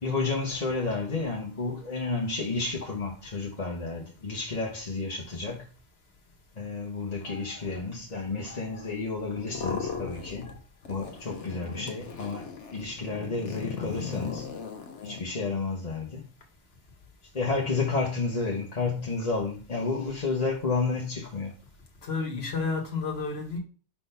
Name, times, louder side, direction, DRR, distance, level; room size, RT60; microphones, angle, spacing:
voice 1, 0.0-5.7 6.6-10.6 10.9-14.5 15.0-16.2 17.3-21.6, left 3 dB, 35° left, 1.1 m, -31 dB
sound 1, 9.4-10.6 10.8-15.2, left 6 dB, 80° left, 1.3 m, -37 dB
voice 2, 22.0-23.6, left 4 dB, 60° left, 1.6 m, -31 dB
4.4 x 4.0 x 5.6 m
omnidirectional pair, 1.2 m